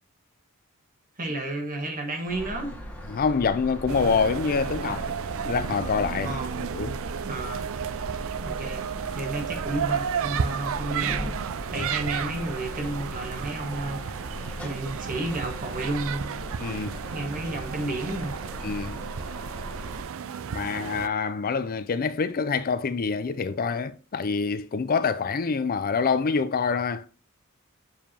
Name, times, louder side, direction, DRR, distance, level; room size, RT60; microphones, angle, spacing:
voice 1, 1.2-2.8 6.2-6.6 7.2-7.7 8.4-8.8 9.1-14.2 14.6-16.3 17.1-18.4, right 2 dB, 40° right, 1.5 m, -32 dB
sound 1, 2.3-20.0, equal, 5° left, 1.2 m, -39 dB
voice 2, 3.1-5.1 5.5-6.3 6.7-7.0 11.8-11.9 16.6-17.0 18.6-19.0 20.5-27.1, left 5 dB, 40° left, 0.4 m, -26 dB
sound 2, 3.9-21.1, right 7 dB, 65° right, 0.4 m, -33 dB
7.1 x 4.8 x 2.9 m
head